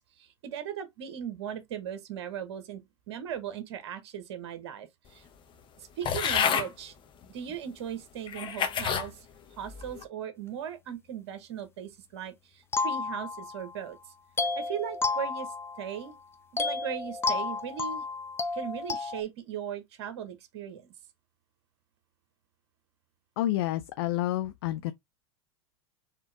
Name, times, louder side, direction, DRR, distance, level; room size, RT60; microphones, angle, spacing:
voice 1, 0.2-2.8 3.1-5.2 5.8-6.9 7.3-9.3 9.6-14.0 14.5-15.5 15.8-16.1 16.5-18.0 18.5-20.9, right 9 dB, 65° right, 1.2 m, -38 dB
sound 1, 6.0-6.7 7.5-7.6 8.3-9.1 9.6-10.0, left 7 dB, 35° left, 1.2 m, -28 dB
sound 2, 12.7-13.8 14.4-16.1 16.6-19.2, left 4 dB, 15° left, 0.7 m, -32 dB
voice 2, 23.4-24.9, left 14 dB, 65° left, 0.5 m, -29 dB
4.4 x 3.4 x 3.4 m
hypercardioid pair, 90°, 14 cm